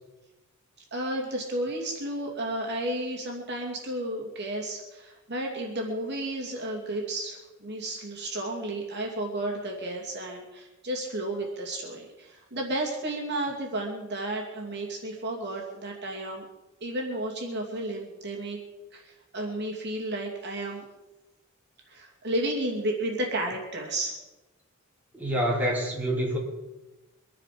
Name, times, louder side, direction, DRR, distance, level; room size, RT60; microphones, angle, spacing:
voice 1, 0.9-16.5 16.8-18.6 18.9-20.9 21.9-24.2, right 1 dB, 50° right, 0 dB, 2.6 m, -32 dB
voice 2, 25.1-26.4, equal, 10° right, -4 dB, 3.9 m, -27 dB
24.5 x 9.8 x 5.1 m, 1.1 s
head